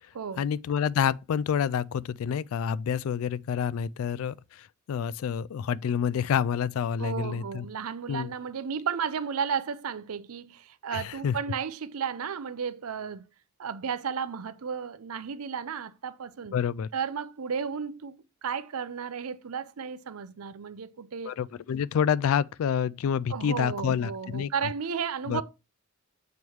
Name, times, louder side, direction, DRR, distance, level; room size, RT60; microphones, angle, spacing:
voice 1, 0.4-7.7 8.1-8.3 10.9-11.4 16.5-16.9 21.3-24.5 25.3-25.4, left 8 dB, 70° left, 0.3 m, -28 dB
voice 2, 7.0-13.3 13.6-16.6 16.9-21.3 23.3-25.4, right 6 dB, 85° right, 0.6 m, -33 dB
7.2 x 3.1 x 4.5 m
head